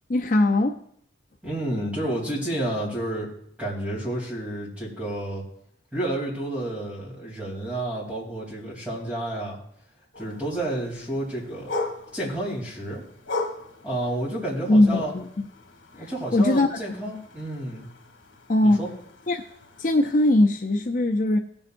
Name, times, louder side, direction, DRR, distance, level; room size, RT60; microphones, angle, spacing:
voice 1, 0.1-0.8 14.7-15.3 15.9-16.8 18.5-18.8 19.3-19.4 19.8-21.4, left 1 dB, 40° left, 3 dB, 0.5 m, -20 dB
voice 2, 1.4-3.3 3.6-5.4 5.9-9.6 10.2-11.7 12.1-13.0 13.8-15.1 16.0-17.9 18.6-18.9, right 1 dB, 5° right, -5 dB, 3.2 m, -30 dB
sound 1, 10.1-20.3, left 2 dB, 75° left, 1.6 m, -39 dB
18.0 x 7.1 x 2.6 m, 0.67 s
head